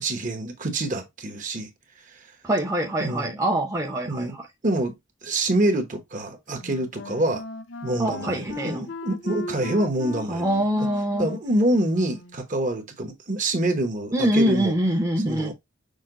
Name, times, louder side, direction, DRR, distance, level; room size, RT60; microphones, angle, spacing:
voice 1, 0.0-1.7 3.0-3.3 4.1-4.4 4.6-4.9 5.2-7.4 7.8-10.5 11.2-14.7 15.2-15.5, right 1 dB, 40° right, 1.0 m, -26 dB
voice 2, 2.4-4.4 8.0-8.9 10.3-11.3 14.1-15.5, right 1 dB, 15° right, 0.7 m, -24 dB
Wind instrument woodwind instrument, 6.6-12.5, left 2 dB, 65° left, 0.7 m, -37 dB
6.4 x 2.2 x 3.7 m
head